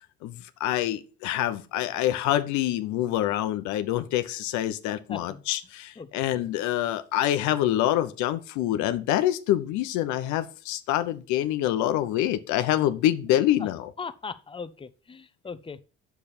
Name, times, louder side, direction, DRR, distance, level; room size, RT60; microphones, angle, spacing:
voice 1, 0.2-13.9, left 13 dB, 70° left, 0.8 m, -26 dB
voice 2, 5.1-5.4 6.0-6.1 13.6-13.7 14.0-15.8, left 5 dB, 15° left, 0.8 m, -38 dB
8.3 x 6.9 x 4.3 m
hypercardioid pair, 65°, 30 cm